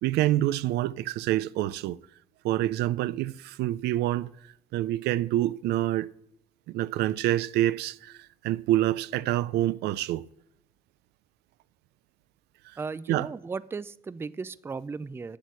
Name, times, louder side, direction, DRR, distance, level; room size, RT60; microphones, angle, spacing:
voice 1, 0.0-2.0 2.4-4.3 4.7-6.1 6.7-8.2 8.4-10.2 13.1-13.3, right 14 dB, 80° right, 0.4 m, -26 dB
voice 2, 12.8-15.4, right 4 dB, 15° right, 0.3 m, -36 dB
8.3 x 8.1 x 6.2 m
cardioid pair, 110°, 17 cm